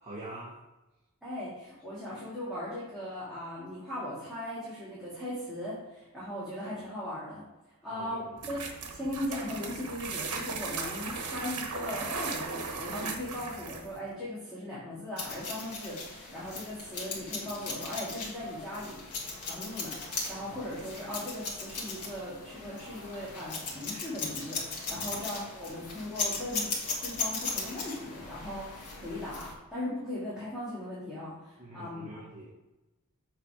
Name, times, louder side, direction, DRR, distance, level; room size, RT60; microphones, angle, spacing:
voice 1, 0.0-0.6 7.8-8.5 24.9-25.2 31.6-32.5, right 1 dB, 30° right, -5 dB, 1.3 m, -45 dB
voice 2, 1.2-7.4 7.8-8.6 8.8-19.0 19.4-26.7 27.0-32.2, left 1 dB, ahead, -11 dB, 2.5 m, -38 dB
sound 1, 8.4-14.0, right 4 dB, 85° right, 1.1 m, -37 dB
sound 2, 15.2-29.5, left 4 dB, 80° left, 1.8 m, -38 dB
7.5 x 4.2 x 5.1 m, 1.0 s
head